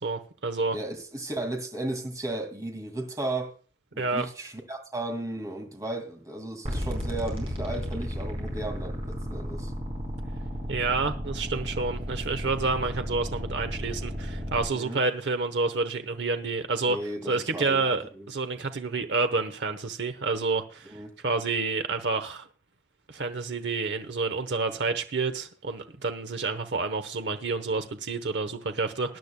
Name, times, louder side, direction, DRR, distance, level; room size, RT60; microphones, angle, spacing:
voice 1, 0.0-0.8 4.0-4.3 10.7-17.0 17.3-21.0 21.2-22.5 23.1-29.2, right 3 dB, 70° right, 0.9 m, -29 dB
voice 2, 0.7-3.5 3.9-9.7 14.7-15.0 16.9-17.9 18.1-18.3 20.9-21.1, right 2 dB, 20° right, 2.2 m, -35 dB
sound 1, 6.6-14.7, equal, 35° right, 4.3 m, -34 dB
20.0 x 10.5 x 2.2 m
head